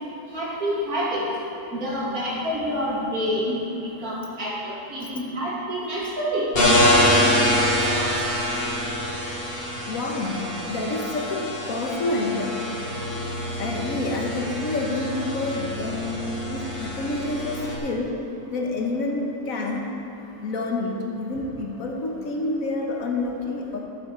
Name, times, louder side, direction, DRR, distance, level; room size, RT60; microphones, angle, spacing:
voice 1, 0.3-1.2 1.7-6.5 13.0-13.1, equal, 80° right, -6 dB, 2.9 m, -28 dB
sound 1, 6.5-17.8, left 1 dB, 40° left, 1.9 m, -25 dB
voice 2, 7.3-7.7 8.0-8.2 9.9-12.6 13.6-18.2 18.5-20.0 20.4-23.8, left 2 dB, 70° left, 1 dB, 1.5 m, -28 dB
12.5 x 7.6 x 4.8 m, 2.8 s
omnidirectional pair, 1.5 m